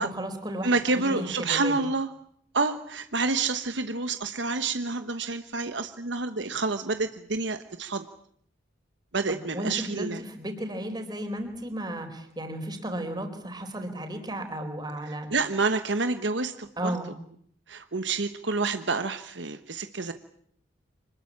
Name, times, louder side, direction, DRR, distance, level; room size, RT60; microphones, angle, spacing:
voice 1, 0.0-1.7 9.3-15.3 16.8-17.1, right 1 dB, 20° right, 5 dB, 4.4 m, -34 dB
voice 2, 0.6-2.1 2.5-8.1 9.1-10.2 15.3-17.0 17.7-20.1, right 3 dB, 70° right, 9 dB, 1.2 m, -28 dB
26.0 x 20.5 x 8.7 m, 0.66 s
head